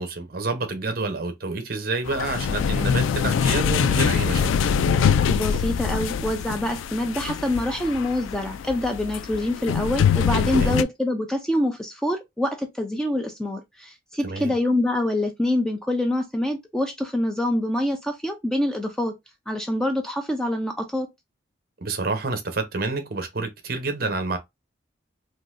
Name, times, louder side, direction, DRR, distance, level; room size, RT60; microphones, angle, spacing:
voice 1, 0.0-4.5 10.5-10.8 14.2-14.5 21.8-24.4, right 3 dB, 50° right, 0.8 m, -28 dB
sound 1, 2.1-10.8, left 7 dB, 90° left, 0.3 m, -23 dB
voice 2, 5.3-19.1 19.5-21.1, left 1 dB, 5° left, 0.4 m, -25 dB
3.8 x 2.7 x 2.5 m
head